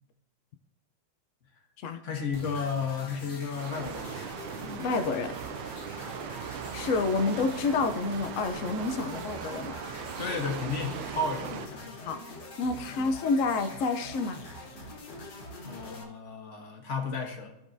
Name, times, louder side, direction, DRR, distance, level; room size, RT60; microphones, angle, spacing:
voice 1, 2.0-4.2 4.6-4.8 6.7-6.9 10.2-12.0 12.9-13.0 15.6-17.5, left 4 dB, 45° left, 3 dB, 1.4 m, -33 dB
sound 1, 2.3-16.0, left 1 dB, 65° left, 1.9 m, -44 dB
sound 2, 3.6-11.7, right 8 dB, 90° right, 1.4 m, -39 dB
voice 2, 4.8-5.4 6.7-9.8 12.0-12.2 12.6-14.4, left 4 dB, 85° left, 7 dB, 0.7 m, -29 dB
14.5 x 5.3 x 2.6 m, 0.93 s
omnidirectional pair, 2.1 m